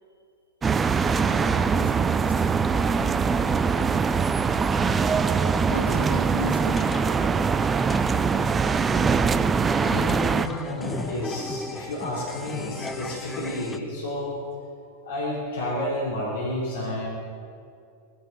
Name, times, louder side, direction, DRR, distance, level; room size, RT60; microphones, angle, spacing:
sound 1, 0.6-10.5, right 5 dB, 20° right, 0.5 m, -22 dB
voice 1, 0.9-3.7 4.5-5.1 5.6-9.1 14.8-15.0, left 1 dB, 90° right, 1 dB, 2.1 m, -40 dB
sound 2, 4.8-13.8, left 4 dB, 15° left, 0.7 m, -37 dB
voice 2, 9.9-14.3 15.0-17.1, left 1 dB, 60° left, -5 dB, 3.6 m, -30 dB
19.5 x 15.5 x 4.1 m, 2.4 s
figure-of-eight pair, 90°, 0 cm